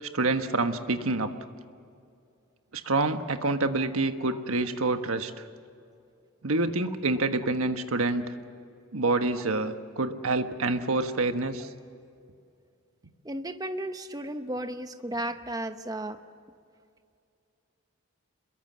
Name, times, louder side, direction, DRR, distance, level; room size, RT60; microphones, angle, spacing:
voice 1, 0.0-1.3 2.7-5.4 6.4-8.3 8.9-11.7, right 2 dB, 80° right, 8 dB, 1.4 m, -27 dB
voice 2, 13.2-16.2, right 1 dB, 15° right, 8 dB, 0.9 m, -34 dB
26.5 x 22.0 x 7.5 m, 2.4 s
head